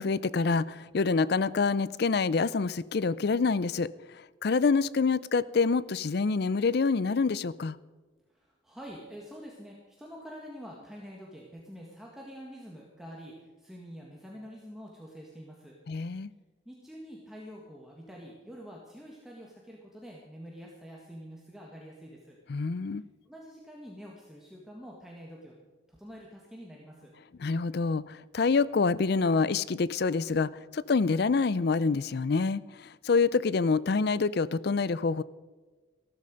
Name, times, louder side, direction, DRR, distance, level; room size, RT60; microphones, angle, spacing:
voice 1, 0.0-3.9 4.4-7.8 15.9-16.3 22.5-23.0 27.4-32.6 33.0-35.2, left 4 dB, 55° left, 19 dB, 0.4 m, -26 dB
voice 2, 8.3-15.7 16.6-22.4 23.2-25.5 25.9-27.1, equal, ahead, -3 dB, 1.6 m, -46 dB
14.0 x 13.5 x 5.2 m, 1.3 s
head